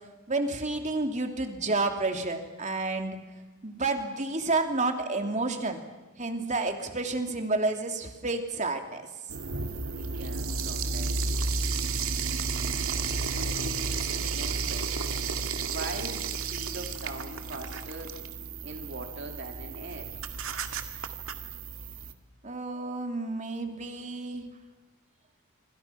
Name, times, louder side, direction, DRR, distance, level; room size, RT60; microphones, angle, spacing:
voice 1, 0.3-3.2 3.6-5.8 6.2-9.1 22.4-24.4, right 3 dB, 35° right, 5 dB, 2.9 m, -30 dB
sound 1, 9.3-22.1, right 4 dB, 80° right, 2.0 m, -32 dB
voice 2, 10.1-11.6 12.1-12.4 13.5-15.2 15.7-18.2 18.6-20.1, right 2 dB, 55° right, 4 dB, 2.6 m, -42 dB
27.5 x 26.0 x 5.9 m, 1.2 s
head